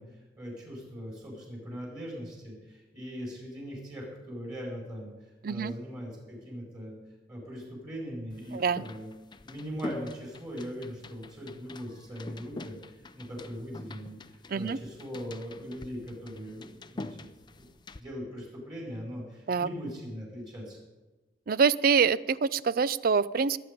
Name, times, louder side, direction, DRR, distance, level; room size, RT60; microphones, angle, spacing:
voice 1, 0.0-6.9 7.3-9.1 9.4-17.2 17.5-17.7 18.0-20.8, equal, 25° right, -2 dB, 4.7 m, -40 dB
sound 1, 8.3-18.0, left 2 dB, 25° left, 0.5 m, -45 dB
voice 2, 8.5-8.8 14.5-14.8 19.5-19.7 21.5-23.6, right 5 dB, 50° right, 19 dB, 0.4 m, -25 dB
22.5 x 8.5 x 5.2 m, 1.2 s
head